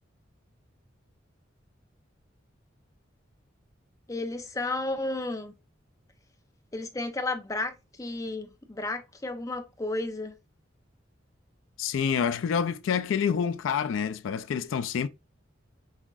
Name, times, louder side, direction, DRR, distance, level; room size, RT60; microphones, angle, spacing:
voice 1, 4.1-5.5 6.7-10.4, left 2 dB, 15° left, 0.5 m, -33 dB
voice 2, 11.8-15.1, left 7 dB, 85° left, 0.3 m, -27 dB
5.7 x 3.5 x 2.3 m
head